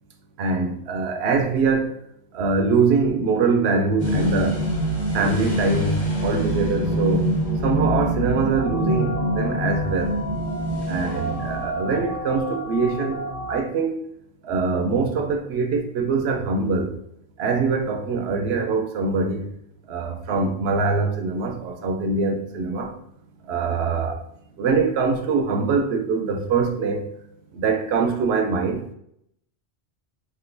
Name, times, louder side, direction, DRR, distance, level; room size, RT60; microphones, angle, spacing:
voice 1, 0.4-1.9 2.3-4.6 5.1-7.2 7.6-10.1 10.9-14.0 14.4-17.0 17.4-19.5 19.9-22.9 23.5-24.2 24.6-27.1 27.5-28.9, right 4 dB, 70° right, 0.8 m, -23 dB
sound 1, 4.0-11.9, equal, 40° left, 1.0 m, -25 dB
sound 2, 8.5-13.6, equal, 60° left, 0.8 m, -33 dB
3.6 x 2.5 x 2.6 m
omnidirectional pair, 1.2 m